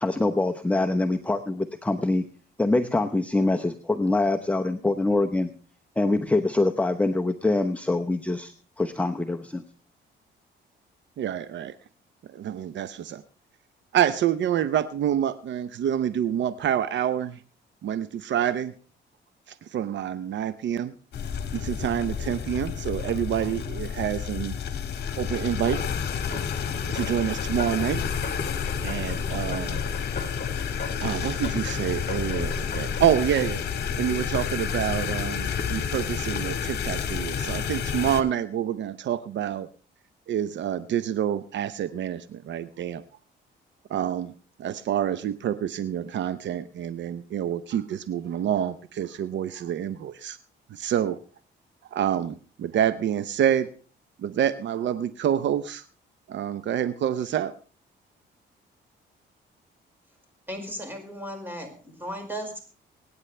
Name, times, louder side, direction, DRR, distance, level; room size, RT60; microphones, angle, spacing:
voice 1, 0.0-2.2 2.6-5.5 6.0-9.6, left 2 dB, 5° left, 5 dB, 0.9 m, -24 dB
voice 2, 11.2-11.7 12.3-13.2 13.9-17.4 17.8-18.7 19.5-20.9 21.5-24.5 25.2-25.8 26.9-28.0 28.8-29.8 31.0-33.6 34.0-39.7 40.3-43.0 43.9-44.3 44.6-50.4 50.7-51.2 51.9-53.7 54.2-55.8 56.3-57.5, right 10 dB, 65° right, 13 dB, 0.7 m, -27 dB
sound 1, 21.1-38.2, left 7 dB, 55° left, 1.7 m, -30 dB
sound 2, 25.7-34.8, left 4 dB, 35° left, 4.5 m, -40 dB
voice 3, 60.5-62.6, equal, 10° right, 3 dB, 5.2 m, -36 dB
24.5 x 9.8 x 3.3 m, 0.40 s
cardioid pair, 90°, 20 cm